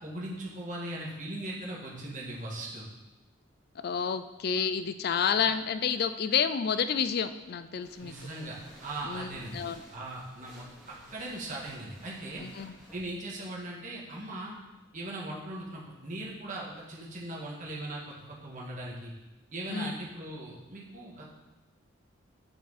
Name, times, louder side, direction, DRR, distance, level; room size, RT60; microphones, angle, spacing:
voice 1, 0.0-2.9 5.4-5.5 8.0-8.6 8.8-9.6 9.9-12.5 12.9-14.6 14.9-19.1 19.5-21.2, right 1 dB, 40° right, -4 dB, 1.8 m, -39 dB
voice 2, 3.8-8.1 9.0-9.8 12.4-12.8 19.7-19.9, left 6 dB, 50° left, 11 dB, 0.4 m, -30 dB
sound 1, 7.8-13.1, equal, ahead, 2.5 m, -54 dB
8.8 x 5.9 x 4.2 m, 1.1 s
head